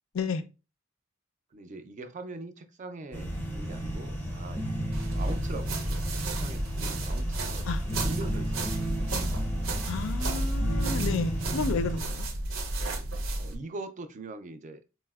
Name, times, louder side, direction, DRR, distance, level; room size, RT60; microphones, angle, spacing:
voice 1, 1.5-6.0 6.3-9.5 13.4-14.8, right 2 dB, 40° right, 0.3 m, -43 dB
sound 1, 3.1-12.0, equal, 10° left, 0.6 m, -34 dB
sound 2, 4.9-13.6, right 1 dB, 85° right, 0.6 m, -32 dB
voice 2, 9.9-12.3, left 4 dB, 85° left, 0.4 m, -32 dB
4.2 x 2.0 x 2.2 m
head